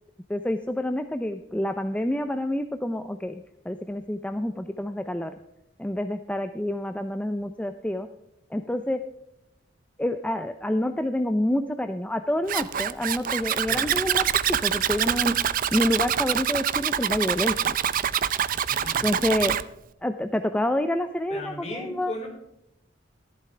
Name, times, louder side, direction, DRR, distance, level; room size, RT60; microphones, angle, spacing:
voice 1, 0.3-5.3 5.8-8.1 8.5-9.0 10.0-15.4 15.7-17.7 19.0-19.6 20.0-22.3, left 1 dB, 5° left, 8 dB, 0.5 m, -28 dB
Zipper (clothing), 12.5-19.6, right 9 dB, 50° right, 0.5 m, -25 dB
voice 2, 13.6-13.9 18.6-19.5 21.3-22.3, left 1 dB, 35° left, 0 dB, 4.8 m, -38 dB
14.0 x 12.0 x 3.4 m, 0.84 s
head